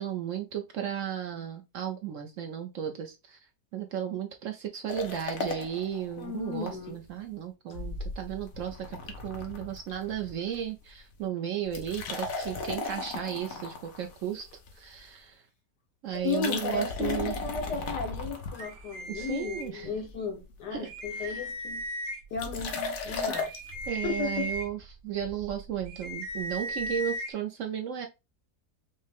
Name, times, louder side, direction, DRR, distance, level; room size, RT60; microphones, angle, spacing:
voice 1, 0.0-3.4 3.7-15.4 16.0-17.3 19.1-19.9 20.7-21.5 23.9-28.1, right 9 dB, 70° right, 0.7 m, -35 dB
sound 1, 4.9-6.7 7.1-7.2 7.7-10.6 10.9-11.2 11.6-15.0 16.1-19.1 19.6-20.1 20.4-20.5 20.7-20.8 21.0-21.3 22.4-23.7, left 3 dB, 60° left, 1.2 m, -36 dB
voice 2, 6.2-7.0 16.2-21.8 22.3-23.5 24.0-24.5, left 4 dB, 80° left, 1.5 m, -34 dB
sound 2, 18.5-20.1 20.5-20.6 20.9-22.4 22.9-27.3, equal, 55° right, 1.3 m, -37 dB
5.5 x 2.1 x 3.4 m
omnidirectional pair, 1.8 m